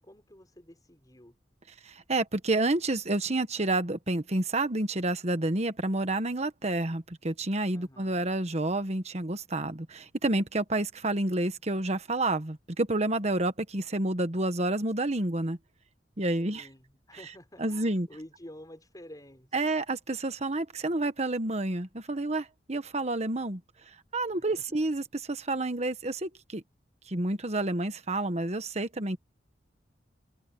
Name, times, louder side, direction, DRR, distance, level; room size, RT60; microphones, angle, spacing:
voice 1, 0.0-1.4 7.7-8.3 16.4-19.6 24.3-24.8, left 1 dB, 20° left, 5.1 m, -50 dB
voice 2, 1.8-15.6 16.2-16.7 17.6-18.1 19.5-23.6 24.1-26.6 27.1-29.2, right 2 dB, 40° right, 1.4 m, -29 dB
head